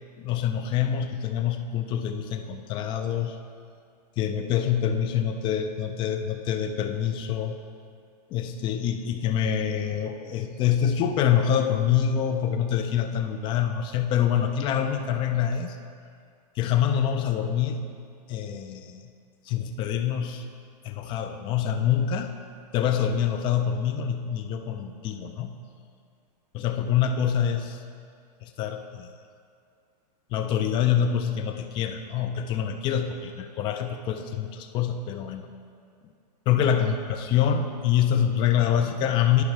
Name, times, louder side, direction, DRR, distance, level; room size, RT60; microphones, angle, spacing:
voice 1, 0.2-3.4 4.2-7.6 8.3-15.8 16.6-17.9 18.3-19.0 19.5-20.5 20.8-22.3 22.7-25.5 26.5-27.8 28.4-29.1 30.3-35.5 36.5-39.4, left 9 dB, 25° left, 6 dB, 0.4 m, -26 dB
11.0 x 5.6 x 3.2 m, 2.3 s
hypercardioid pair, 135°, 21 cm